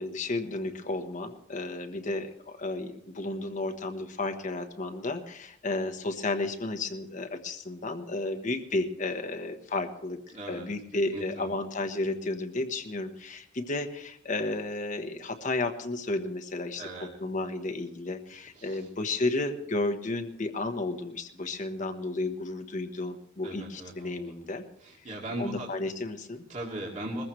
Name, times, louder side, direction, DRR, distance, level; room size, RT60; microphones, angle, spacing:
voice 1, 0.0-10.2 10.5-24.6 25.4-26.4, left 2 dB, 40° left, 5 dB, 1.2 m, -32 dB
voice 2, 10.3-10.7 11.1-11.5 16.8-17.1 18.6-18.8 23.4-24.3 24.8-25.7 26.5-27.2, right 1 dB, 40° right, -2 dB, 2.3 m, -38 dB
21.5 x 15.0 x 3.2 m, 0.73 s
head